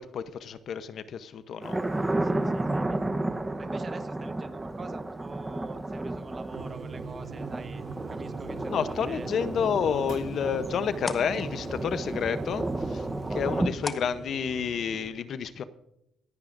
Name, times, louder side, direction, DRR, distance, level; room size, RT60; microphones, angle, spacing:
voice 1, 0.0-1.8 8.7-13.0 13.3-15.6, left 7 dB, 65° left, 13 dB, 0.8 m, -30 dB
Thunder, 1.6-13.7, right 2 dB, 15° right, 1.0 m, -32 dB
voice 2, 2.2-3.0 3.6-7.8 8.1-9.3, right 4 dB, 35° right, 9 dB, 1.3 m, -45 dB
sound 1, 6.5-15.1, right 4 dB, 70° right, 5.9 m, -41 dB
sound 2, 9.6-15.0, left 2 dB, 20° left, 0.9 m, -44 dB
27.0 x 9.5 x 2.6 m, 0.81 s
cardioid pair, 90°, 0 cm